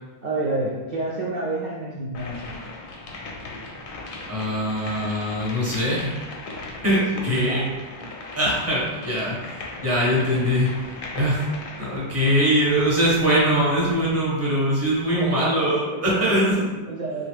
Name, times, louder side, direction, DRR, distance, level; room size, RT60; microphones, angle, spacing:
voice 1, 0.2-2.5 7.1-7.7 15.0-17.3, right 2 dB, 55° right, -5 dB, 0.5 m, -29 dB
sound 1, 2.1-14.2, left 2 dB, 60° left, 0.6 m, -38 dB
voice 2, 4.3-6.1 6.8-7.6 8.3-9.4 9.8-10.7 11.1-11.5 11.8-16.7, equal, 15° right, -6 dB, 0.8 m, -22 dB
3.2 x 2.1 x 3.3 m, 1.2 s
omnidirectional pair, 1.1 m